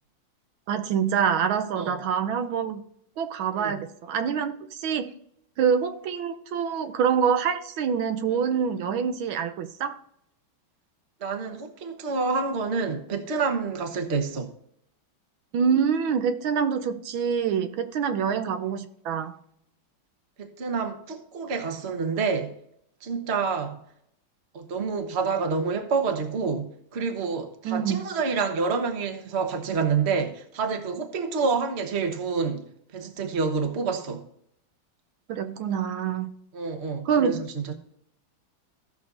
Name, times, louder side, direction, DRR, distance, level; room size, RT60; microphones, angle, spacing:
voice 1, 0.7-2.8 3.2-5.1 5.6-10.0 15.5-19.4 27.6-28.0 35.3-36.3 37.0-37.4, right 7 dB, 80° right, 1.6 m, -26 dB
voice 2, 3.5-3.8 11.2-14.5 20.4-22.5 23.0-23.8 24.5-32.6 32.9-34.2 36.5-37.7, right 5 dB, 40° right, 1.2 m, -28 dB
16.0 x 6.4 x 2.6 m
omnidirectional pair, 2.2 m